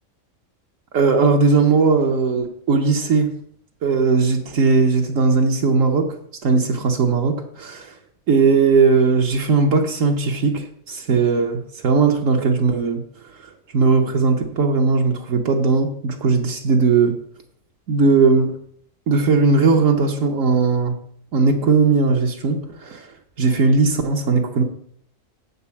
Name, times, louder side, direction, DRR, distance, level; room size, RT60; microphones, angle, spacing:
voice 1, 0.9-3.4 3.8-6.2 6.4-7.9 8.3-13.0 13.7-17.2 17.9-18.6 19.1-21.0 21.3-23.1 23.4-24.6, right 4 dB, 70° right, 2 dB, 1.4 m, -18 dB
7.6 x 5.5 x 7.1 m, 0.64 s
omnidirectional pair, 1.4 m